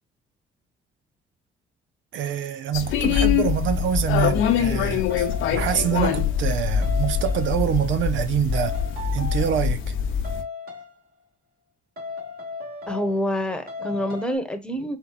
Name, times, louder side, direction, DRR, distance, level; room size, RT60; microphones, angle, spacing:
voice 1, 2.1-8.8 9.1-9.8, right 9 dB, 75° right, 0.5 m, -25 dB
sound 1, 2.7-10.4, left 8 dB, 85° left, 0.7 m, -24 dB
sound 2, 5.1-6.5 6.8-7.7 8.5-9.8 10.2-11.0 12.0-13.4 13.7-14.4, left 4 dB, 55° right, 2.0 m, -36 dB
voice 2, 12.9-15.0, equal, 5° left, 1.1 m, -27 dB
4.5 x 3.9 x 2.4 m
cardioid pair, 90°, 20 cm